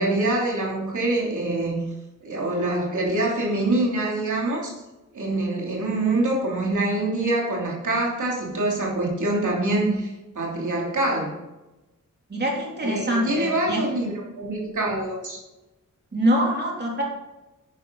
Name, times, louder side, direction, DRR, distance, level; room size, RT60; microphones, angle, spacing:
voice 1, 0.0-1.8 2.2-4.7 5.1-11.3 12.8-15.4, right 2 dB, 75° right, -2 dB, 3.1 m, -25 dB
voice 2, 12.3-13.9 16.1-17.0, equal, 35° right, -2 dB, 3.3 m, -24 dB
11.0 x 10.5 x 4.0 m, 1.1 s
wide cardioid pair, 125°, 31 cm